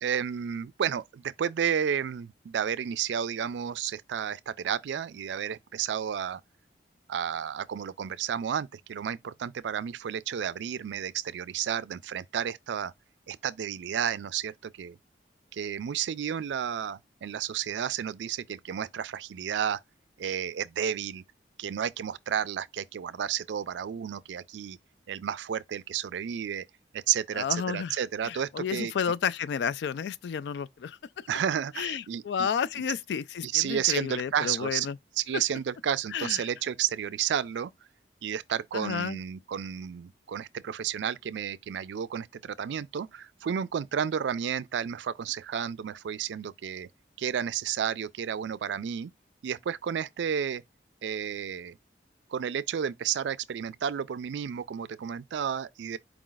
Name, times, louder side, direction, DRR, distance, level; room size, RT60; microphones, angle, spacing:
voice 1, 0.0-6.4 7.1-12.9 13.3-15.0 15.5-19.8 20.2-21.2 21.6-24.8 25.1-26.7 26.9-28.9 31.3-32.5 32.8-32.9 33.4-34.9 35.2-37.7 38.2-46.9 47.2-49.1 49.4-50.6 51.0-51.8 52.3-56.0, right 8 dB, 80° right, 0.3 m, -31 dB
voice 2, 27.3-27.9 28.2-31.0 31.8-35.0 36.1-36.4 38.7-39.2, left 7 dB, 70° left, 0.3 m, -31 dB
4.8 x 2.4 x 3.8 m
head